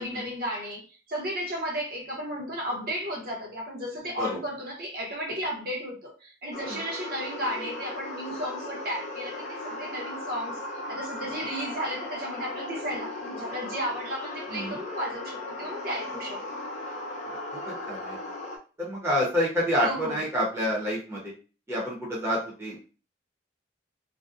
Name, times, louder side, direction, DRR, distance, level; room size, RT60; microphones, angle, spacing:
voice 1, 0.0-10.6 10.9-16.4 19.8-20.2, equal, 50° right, 0.8 m, -34 dB
sound 1, 6.5-18.6, left 2 dB, 40° left, 0.4 m, -37 dB
voice 2, 17.5-18.2 18.8-21.3 21.7-22.8, equal, 15° right, 0.7 m, -28 dB
2.6 x 2.1 x 2.4 m
head